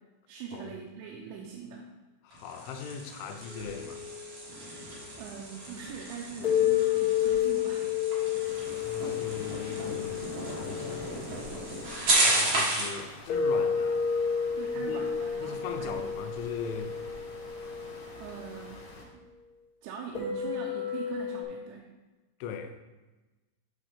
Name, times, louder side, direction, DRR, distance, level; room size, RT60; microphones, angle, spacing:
voice 1, 0.3-1.9 5.2-7.9 14.6-16.0 18.2-19.3 19.8-21.8, right 6 dB, 80° right, -2 dB, 3.0 m, -42 dB
voice 2, 2.2-4.0 8.8-11.3 12.2-14.1 14.7-15.1 15.4-17.0 22.4-22.8, left 6 dB, 90° left, 7 dB, 3.1 m, -40 dB
sound 1, 2.3-13.0, right 2 dB, 65° right, 1.4 m, -33 dB
sound 2, 3.4-5.0 6.4-11.9 13.3-18.7 20.1-21.4, left 8 dB, 35° left, 1.6 m, -31 dB
sound 3, 8.4-19.1, left 2 dB, 70° left, 4.0 m, -48 dB
10.0 x 3.8 x 4.9 m, 1.2 s
omnidirectional pair, 5.3 m